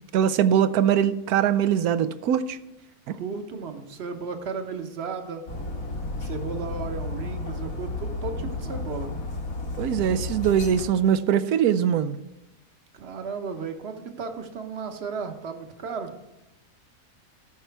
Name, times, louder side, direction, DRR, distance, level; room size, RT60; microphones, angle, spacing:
voice 1, 0.1-2.6 9.8-12.2, right 9 dB, 80° right, 13 dB, 1.1 m, -22 dB
voice 2, 3.1-5.4 6.2-9.1 12.9-16.1, right 5 dB, 50° right, 6 dB, 1.2 m, -34 dB
Dog, 5.5-10.8, left 2 dB, 75° left, 2.0 m, -32 dB
14.0 x 5.6 x 4.6 m, 0.96 s
omnidirectional pair, 1.6 m